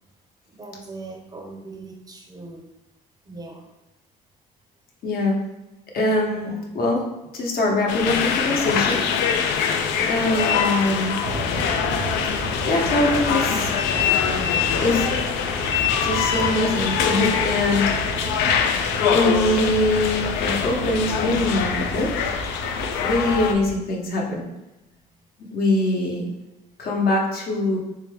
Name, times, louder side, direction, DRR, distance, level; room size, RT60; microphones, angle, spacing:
voice 1, 0.5-2.6 3.3-3.7 6.3-6.8 9.9-10.3 23.0-23.1, right 3 dB, 20° right, 2 dB, 0.5 m, -40 dB
voice 2, 5.0-5.4 5.9-7.0 7.3-9.0 10.1-11.1 12.7-13.8 14.8-15.1 16.0-17.9 19.0-22.1 23.0-24.4 25.5-26.3 26.8-27.8, left 2 dB, 60° left, -1 dB, 0.9 m, -23 dB
sound 1, 7.9-23.5, left 7 dB, 90° left, 0.4 m, -23 dB
sound 2, 11.2-23.8, right 3 dB, 80° right, 0.6 m, -33 dB
4.0 x 2.3 x 3.3 m, 0.99 s
cardioid pair, 110°, 17 cm